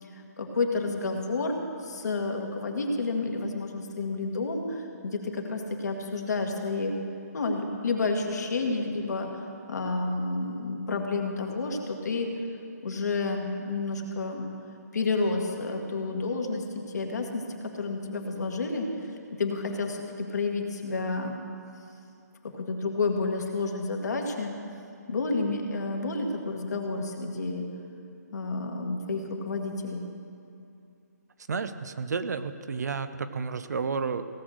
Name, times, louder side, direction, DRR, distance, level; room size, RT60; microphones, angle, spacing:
voice 1, 0.0-6.9 7.3-12.3 12.8-14.5 14.9-18.9 19.4-21.4 22.6-24.5 25.1-27.7 28.3-30.0, left 3 dB, 70° left, 2 dB, 1.8 m, -30 dB
voice 2, 31.5-34.2, right 5 dB, 70° right, 11 dB, 0.7 m, -31 dB
17.0 x 6.3 x 6.4 m, 2.7 s
hypercardioid pair, 150°, 9 cm